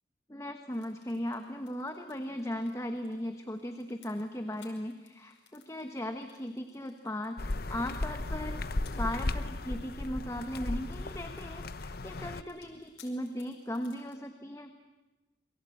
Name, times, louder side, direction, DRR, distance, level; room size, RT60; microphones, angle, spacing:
voice 1, 0.3-14.7, left 1 dB, 15° left, 6 dB, 1.3 m, -37 dB
sound 1, 0.7-14.2, left 8 dB, 85° left, 5.4 m, -63 dB
sound 2, 7.4-12.4, left 2 dB, 55° left, 0.9 m, -35 dB
28.0 x 22.5 x 8.6 m, 1.1 s
head